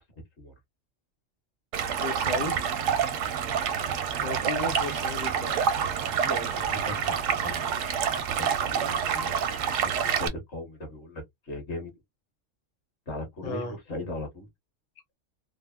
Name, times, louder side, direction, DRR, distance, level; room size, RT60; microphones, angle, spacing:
Stream, 1.7-10.3, right 7 dB, 85° right, 1.0 m, -27 dB
voice 1, 2.0-2.7 4.2-5.7 13.4-13.8, left 4 dB, 40° left, 0.6 m, -35 dB
voice 2, 6.2-11.9 13.1-14.5, left 1 dB, 60° left, 1.5 m, -39 dB
3.3 x 2.0 x 2.3 m
omnidirectional pair, 1.3 m